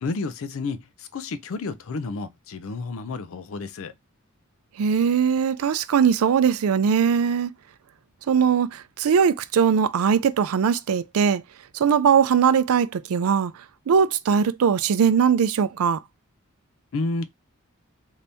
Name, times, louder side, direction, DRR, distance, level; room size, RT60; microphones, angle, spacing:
voice 1, 0.0-3.9 16.9-17.3, left 3 dB, 65° left, 0.4 m, -31 dB
voice 2, 4.8-7.5 8.3-11.4 11.7-13.5 13.9-16.0, right 7 dB, 85° right, 0.4 m, -20 dB
2.7 x 2.7 x 3.4 m
head